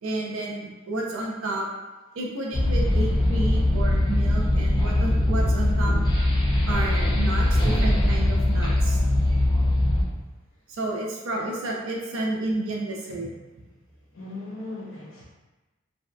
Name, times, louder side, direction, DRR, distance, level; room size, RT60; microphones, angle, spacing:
voice 1, 0.0-1.7 2.2-5.9 6.7-9.0 10.7-13.3, right 2 dB, 75° right, -1 dB, 0.5 m, -31 dB
sound 1, 2.5-10.0, left 1 dB, 20° left, 0.5 m, -21 dB
voice 2, 14.1-15.3, left 2 dB, 75° left, -5 dB, 0.8 m, -37 dB
2.6 x 2.2 x 2.2 m, 1.1 s
head